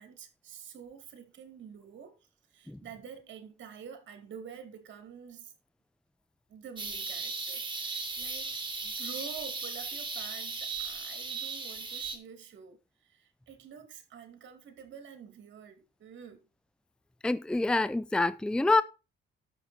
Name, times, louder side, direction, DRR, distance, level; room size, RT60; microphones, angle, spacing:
voice 1, 0.0-5.5 6.5-16.5, right 7 dB, 70° right, 2.5 m, -48 dB
sound 1, 6.8-12.2, right 4 dB, 25° right, 3.1 m, -37 dB
voice 2, 17.2-18.8, left 2 dB, 5° left, 0.5 m, -26 dB
13.0 x 6.3 x 4.3 m
cardioid pair, 90°, 20 cm